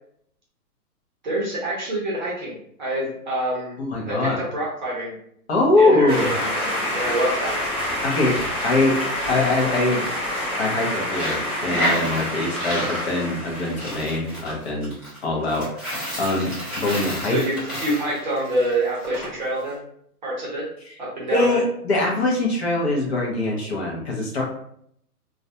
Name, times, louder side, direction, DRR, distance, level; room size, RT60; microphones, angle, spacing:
voice 1, 1.2-2.5 2.8-3.7 4.1-5.1 5.8-7.6 17.2-19.8 20.2-20.7 21.0-21.6, right 1 dB, 30° right, -4 dB, 0.6 m, -26 dB
voice 2, 3.8-4.4 5.5-6.3 8.0-8.4 8.6-9.0 9.3-10.1 10.6-14.9 15.2-17.4 20.9-21.0 21.3-24.4, left 2 dB, 45° left, -2 dB, 0.6 m, -22 dB
sound 1, 6.1-14.4, left 1 dB, 15° left, 1.0 m, -27 dB
Coin (dropping), 11.1-19.3, equal, ahead, 1.0 m, -31 dB
2.4 x 2.1 x 2.6 m, 0.69 s
hypercardioid pair, 160°, 46 cm